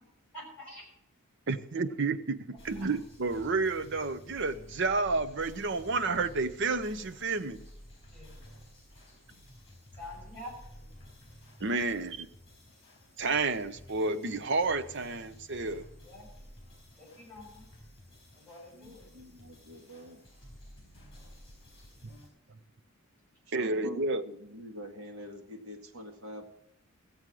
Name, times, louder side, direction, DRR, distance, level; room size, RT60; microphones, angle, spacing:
voice 1, 0.3-0.8 8.1-8.4 10.0-10.9 15.9-16.5 17.0-17.7 18.3-19.1, left 1 dB, 10° left, -2 dB, 6.2 m, -47 dB
voice 2, 1.5-7.6 11.6-12.3 13.2-15.8 23.5-24.2, right 3 dB, 55° right, 11 dB, 0.7 m, -30 dB
sound 1, 2.6-22.3, equal, 25° left, 4.4 m, -52 dB
voice 3, 18.7-20.2 23.5-26.5, equal, 75° right, 4 dB, 1.8 m, -45 dB
15.5 x 8.0 x 6.1 m, 0.78 s
head